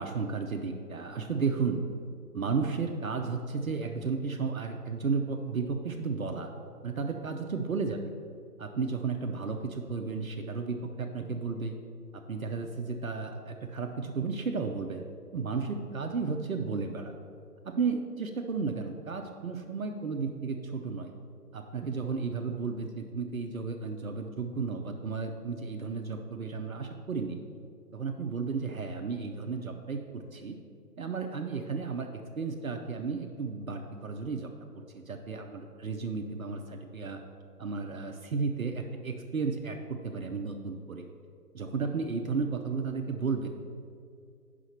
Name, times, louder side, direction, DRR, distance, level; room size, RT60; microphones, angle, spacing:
voice 1, 0.0-1.8 2.3-6.5 6.8-8.0 8.6-11.7 12.1-15.0 15.3-17.1 17.6-21.1 21.5-27.4 27.9-30.6 31.0-32.1 32.4-34.5 34.9-37.2 37.6-41.0 41.5-43.5, right 4 dB, 60° right, 4 dB, 0.7 m, -33 dB
5.8 x 4.9 x 6.6 m, 2.3 s
figure-of-eight pair, 145°, 47 cm